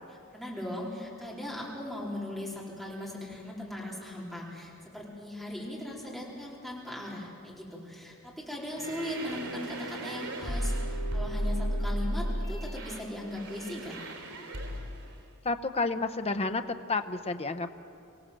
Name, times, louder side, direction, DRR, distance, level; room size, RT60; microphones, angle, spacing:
voice 1, 0.3-14.0, left 1 dB, ahead, -5 dB, 4.2 m, -39 dB
sound 1, 8.7-15.1, equal, 85° right, 3.5 m, -34 dB
voice 2, 15.4-16.6 16.9-17.7, left 3 dB, 30° left, 8 dB, 0.7 m, -30 dB
25.5 x 17.0 x 7.6 m, 2.5 s
head